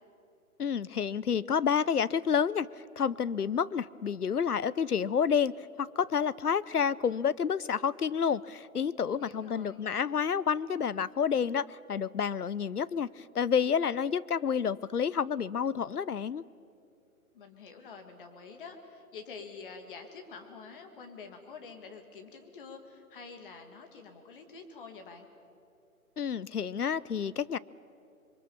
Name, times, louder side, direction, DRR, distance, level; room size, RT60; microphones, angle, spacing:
voice 1, 0.6-2.7 3.0-16.4 26.2-27.6, left 7 dB, 90° left, 20 dB, 0.7 m, -29 dB
voice 2, 9.2-9.9 17.3-25.3, left 5 dB, 35° left, 5 dB, 2.1 m, -47 dB
26.0 x 23.5 x 7.0 m, 2.6 s
figure-of-eight pair, 135°, 44 cm